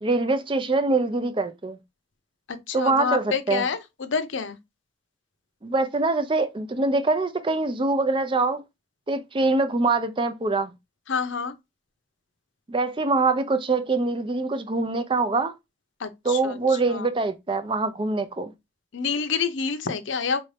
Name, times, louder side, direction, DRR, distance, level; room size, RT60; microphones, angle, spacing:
voice 1, 0.0-1.8 2.7-3.6 5.6-8.6 9.1-10.7 12.7-15.5 16.3-18.5, right 3 dB, 25° right, 0.5 m, -24 dB
voice 2, 2.5-4.6 11.1-11.5 16.0-17.1 18.9-20.4, left 5 dB, 75° left, 0.7 m, -28 dB
4.3 x 2.6 x 3.2 m
head